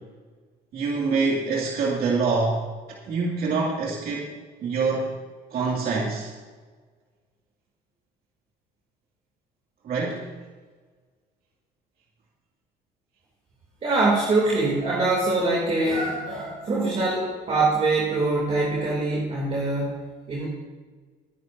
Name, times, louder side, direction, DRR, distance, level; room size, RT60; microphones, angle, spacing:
voice 1, 0.7-2.6 3.1-4.3 4.6-5.1 5.5-6.3 9.8-10.2, right 4 dB, 60° right, -3 dB, 2.4 m, -25 dB
voice 2, 13.8-20.0 20.3-20.5, right 2 dB, 40° right, -4 dB, 2.9 m, -23 dB
20.0 x 10.5 x 2.7 m, 1.4 s
cardioid pair, 110°, 17 cm